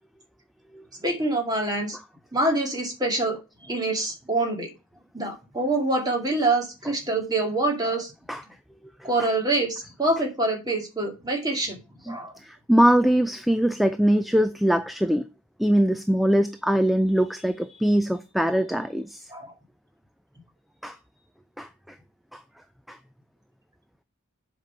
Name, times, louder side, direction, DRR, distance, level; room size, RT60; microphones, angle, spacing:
voice 1, 1.0-2.0 2.3-3.4 3.7-4.7 5.1-8.1 9.0-11.8 12.1-12.3 19.3-19.5, right 2 dB, 20° right, 2.1 m, -25 dB
voice 2, 12.0-15.3 15.6-19.3 20.8-21.0 21.6-21.7 22.3-22.4 22.9-23.0, equal, ahead, 0.4 m, -22 dB
7.7 x 5.3 x 5.7 m
head